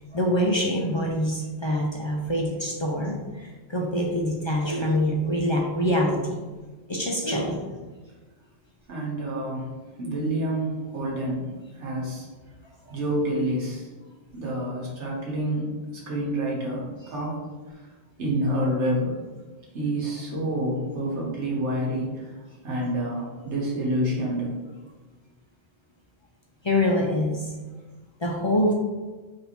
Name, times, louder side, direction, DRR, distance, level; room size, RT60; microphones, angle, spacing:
voice 1, 0.1-6.4 6.9-7.6 26.6-27.5 28.2-28.7, left 1 dB, 45° left, -1 dB, 0.3 m, -25 dB
voice 2, 8.9-9.7 10.0-12.3 12.9-13.9 14.3-15.7 16.1-17.4 17.7-17.8 18.2-19.2 19.7-22.4 22.6-24.6, right 1 dB, 90° right, -3 dB, 1.3 m, -28 dB
3.6 x 2.7 x 4.2 m, 1.3 s
omnidirectional pair, 1.1 m